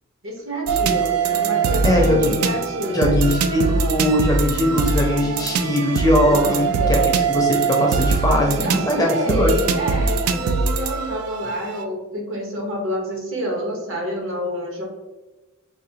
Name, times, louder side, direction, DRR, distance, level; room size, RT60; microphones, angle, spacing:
voice 1, 0.2-3.1 6.2-6.9 8.6-14.8, equal, 60° right, 0 dB, 0.9 m, -28 dB
sound 1, 0.7-11.8, right 4 dB, 80° right, 0.3 m, -22 dB
voice 2, 1.8-2.4 2.9-7.0 7.3-9.5, left 1 dB, 15° left, 0 dB, 0.4 m, -20 dB
4.8 x 2.3 x 2.7 m, 1.1 s
head